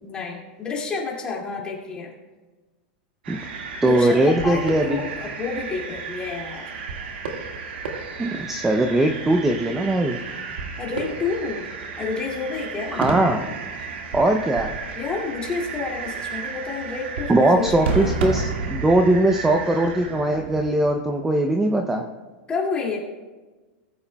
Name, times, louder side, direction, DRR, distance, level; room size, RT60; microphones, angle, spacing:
voice 1, 0.0-2.1 3.8-6.7 10.8-11.7 12.0-13.0 15.0-18.1 22.5-23.0, left 4 dB, 15° left, -2 dB, 2.2 m, -29 dB
sound 1, 3.2-20.9, right 4 dB, 85° right, 1.8 m, -32 dB
voice 2, 3.8-5.0 8.2-10.2 12.9-13.4 14.1-14.7 17.3-22.0, right 1 dB, 5° right, 4 dB, 0.5 m, -20 dB
19.0 x 8.5 x 2.3 m, 1.2 s
supercardioid pair, 155°, 6 cm